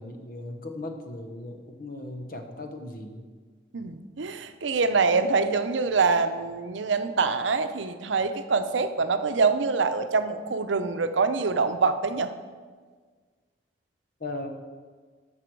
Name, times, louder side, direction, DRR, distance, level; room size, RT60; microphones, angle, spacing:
voice 1, 0.0-3.3 14.2-14.5, left 2 dB, 50° left, 6 dB, 1.0 m, -37 dB
voice 2, 3.7-12.3, right 4 dB, 90° right, 9 dB, 0.6 m, -25 dB
13.5 x 6.0 x 4.7 m, 1.6 s
head